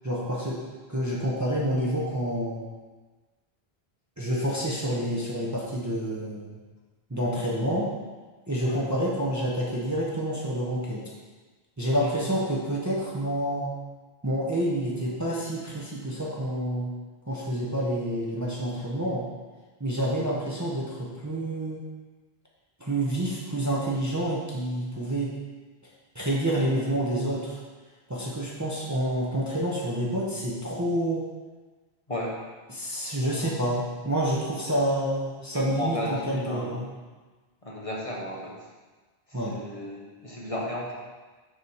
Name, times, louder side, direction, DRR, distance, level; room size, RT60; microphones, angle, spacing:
voice 1, 0.0-0.6 0.9-2.6 4.2-6.6 7.1-7.9 8.5-11.0 11.8-13.7 14.2-16.9 17.3-19.2 19.8-21.8 22.8-25.3 26.1-27.6 28.1-31.3 32.7-37.0 39.3-39.5, right 1 dB, 20° right, -5 dB, 0.8 m, -28 dB
voice 2, 33.1-33.5 35.5-36.8 37.6-38.6 39.3-40.9, left 1 dB, 35° left, -4 dB, 0.9 m, -34 dB
6.7 x 3.0 x 5.5 m, 1.3 s
omnidirectional pair, 1.1 m